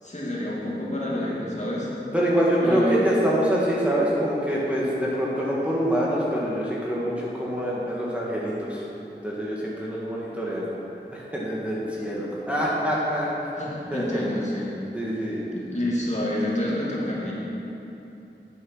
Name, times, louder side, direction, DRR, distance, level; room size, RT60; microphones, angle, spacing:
voice 1, 0.0-1.9 2.6-3.0 13.6-14.7 15.5-17.3, left 1 dB, 35° left, -6 dB, 2.5 m, -28 dB
voice 2, 2.1-8.8 9.2-10.6 11.1-13.3 13.9-14.3 14.9-15.4, equal, 5° right, -6 dB, 1.7 m, -25 dB
9.1 x 7.7 x 5.5 m, 2.9 s
wide cardioid pair, 45°, 19 cm